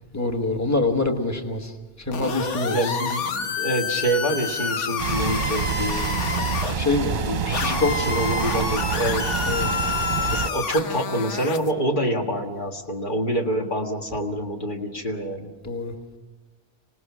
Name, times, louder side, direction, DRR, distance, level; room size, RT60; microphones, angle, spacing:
voice 1, 0.1-1.7 2.1-3.0 6.8-7.2 7.4-8.0 9.5-9.7 15.6-15.9, left 3 dB, 15° left, 4 dB, 1.5 m, -25 dB
sound 1, 2.1-6.7 7.5-11.7, left 5 dB, 85° left, 1.4 m, -28 dB
voice 2, 2.7-6.1 7.2-9.4 10.3-15.5, right 1 dB, 45° left, 2 dB, 2.0 m, -26 dB
sound 2, 5.0-10.5, right 6 dB, 45° right, 0.9 m, -27 dB
26.0 x 19.0 x 6.1 m, 1.3 s
omnidirectional pair, 1.2 m